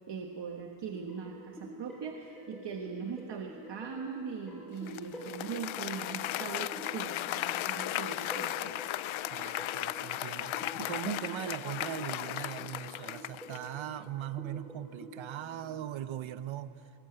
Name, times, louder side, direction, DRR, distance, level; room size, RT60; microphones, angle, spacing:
voice 1, 0.1-8.8, right 6 dB, 65° right, 3 dB, 1.4 m, -40 dB
sound 1, 0.9-15.8, right 1 dB, ahead, 4.8 m, -48 dB
sound 2, 2.2-7.9, right 3 dB, 30° left, 2.3 m, -67 dB
Applause, 4.9-13.8, left 14 dB, 85° left, 0.6 m, -36 dB
voice 2, 9.3-16.8, right 11 dB, 90° right, 12 dB, 0.9 m, -40 dB
22.5 x 20.0 x 7.9 m, 2.4 s
wide cardioid pair, 180°, 46 cm